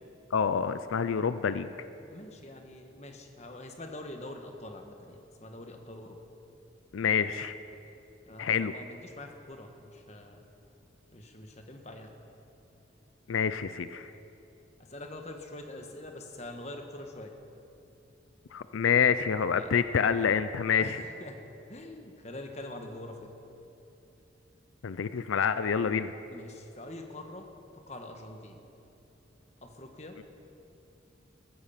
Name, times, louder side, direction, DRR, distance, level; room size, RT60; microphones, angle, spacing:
voice 1, 0.3-1.7 6.9-7.5 8.4-8.7 13.3-14.1 18.5-21.0 24.8-26.1, left 7 dB, 85° left, 12 dB, 0.5 m, -27 dB
voice 2, 2.1-6.2 8.3-10.5 11.1-12.2 14.8-17.3 19.5-19.7 20.8-21.4 21.7-23.3 26.3-27.5 27.7-28.6 29.6-30.2, left 1 dB, 35° left, 4 dB, 1.3 m, -44 dB
15.5 x 14.0 x 5.7 m, 2.9 s
head